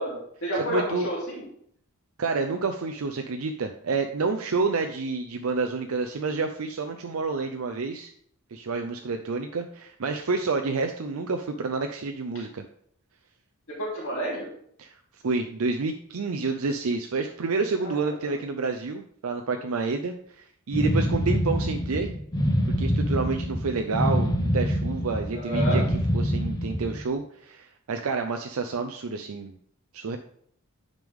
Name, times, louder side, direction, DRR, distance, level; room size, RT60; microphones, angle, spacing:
voice 1, 0.0-1.4 13.7-14.5 17.8-18.3 25.3-25.8, right 1 dB, 65° left, -5 dB, 3.1 m, -30 dB
voice 2, 0.7-1.1 2.2-8.1 8.5-12.6 14.8-15.0 15.2-22.1 22.8-25.8 26.1-29.5 29.9-30.2, right 4 dB, 75° right, 5 dB, 0.5 m, -29 dB
sound 1, 20.7-27.0, equal, 15° left, 0.9 m, -25 dB
9.3 x 5.2 x 3.6 m, 0.66 s
head